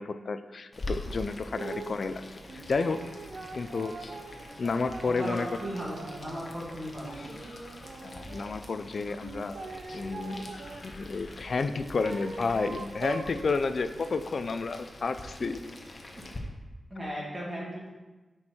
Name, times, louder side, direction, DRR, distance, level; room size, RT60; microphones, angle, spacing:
voice 1, 0.0-2.2 2.5-3.0 3.6-4.1 4.6-5.5 8.0-9.6 9.9-10.5 10.8-15.6, left 4 dB, 50° left, 10 dB, 0.4 m, -31 dB
Boiling, 0.7-16.4, left 1 dB, 35° left, 1.0 m, -45 dB
sound 1, 1.6-2.0 2.5-6.5 6.9-8.5 9.2-10.8 11.6-13.3, right 3 dB, 70° right, 0.7 m, -42 dB
sound 2, 5.0-5.9 6.8-8.0 9.4-11.6, left 2 dB, 80° left, 1.4 m, -52 dB
voice 2, 5.0-7.4 15.4-15.5 16.1-16.2 16.9-17.9, equal, 25° right, -5 dB, 2.4 m, -37 dB
9.7 x 4.5 x 4.4 m, 1.2 s
wide cardioid pair, 145°, 0 cm